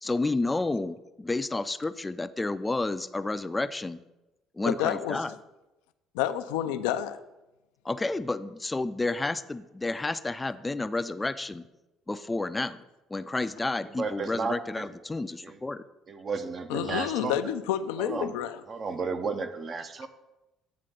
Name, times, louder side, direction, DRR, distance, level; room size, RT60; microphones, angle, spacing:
voice 1, 0.0-4.0 4.5-5.3 7.8-11.6 12.1-12.8 13.1-15.8, left 2 dB, 20° left, 13 dB, 0.4 m, -30 dB
voice 2, 4.7-5.2 6.1-7.2 16.7-18.6, left 11 dB, 85° left, 10 dB, 0.4 m, -29 dB
voice 3, 13.9-14.9 15.4-15.6 16.1-17.4 18.0-18.3 18.7-20.1, right 4 dB, 45° right, 9 dB, 0.7 m, -33 dB
9.0 x 3.4 x 6.5 m, 1.0 s
supercardioid pair, 70°, 0 cm